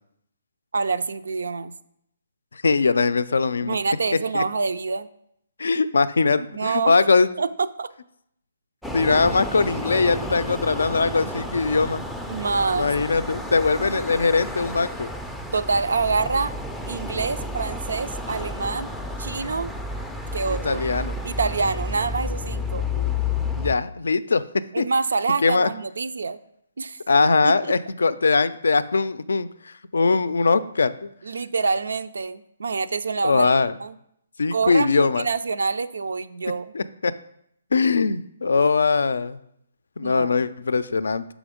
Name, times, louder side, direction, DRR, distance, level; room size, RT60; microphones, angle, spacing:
voice 1, 0.7-1.7 3.6-5.1 6.3-7.0 7.4-7.9 12.3-12.9 13.9-14.0 15.5-16.5 16.9-18.9 19.2-19.7 20.3-20.8 21.2-22.9 24.7-26.4 26.8-27.0 27.4-27.8 31.2-33.5 33.8-34.0 34.5-36.7 40.0-40.4, right 4 dB, 85° right, 12 dB, 0.4 m, -26 dB
voice 2, 2.5-3.8 4.3-4.4 5.6-7.3 8.9-12.0 12.8-15.1 20.6-21.1 23.0-23.1 23.6-24.8 25.4-25.7 27.1-31.1 33.2-33.8 34.4-35.3 36.7-37.1 37.7-39.4 40.0-41.3, left 4 dB, 85° left, 15 dB, 0.4 m, -21 dB
sound 1, 8.8-23.8, left 2 dB, ahead, 0.3 m, -31 dB
6.1 x 5.0 x 5.0 m, 0.74 s
hypercardioid pair, 160°, 0 cm